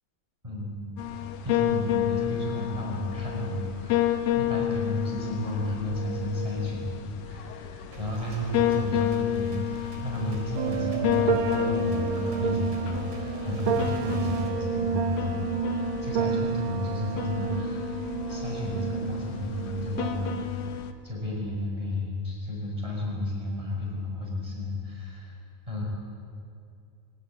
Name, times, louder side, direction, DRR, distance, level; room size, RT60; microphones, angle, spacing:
voice 1, 0.4-20.7 21.0-25.3 25.7-25.8, left 1 dB, 10° right, -3 dB, 6.1 m, -32 dB
sound 1, 1.0-20.9, left 12 dB, 80° left, 2.7 m, -31 dB
sound 2, 7.9-14.5, right 2 dB, 60° right, 4.0 m, -43 dB
sound 3, 10.6-20.5, right 6 dB, 90° right, 1.1 m, -30 dB
21.0 x 18.5 x 9.6 m, 2.4 s
omnidirectional pair, 4.1 m